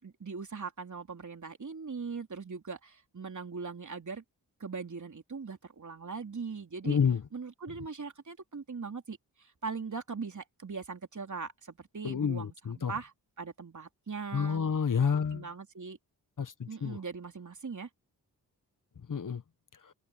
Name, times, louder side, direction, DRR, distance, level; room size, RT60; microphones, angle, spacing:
voice 1, 0.0-4.2 4.6-7.0 7.3-14.6 15.3-16.0 16.7-17.9, right 5 dB, 45° right, 3.6 m, -40 dB
voice 2, 6.8-7.2 12.0-12.9 14.3-15.5 16.4-17.0 19.1-19.4 19.8-19.9, left 6 dB, 50° left, 1.5 m, -29 dB
supercardioid pair, 40°, 40 cm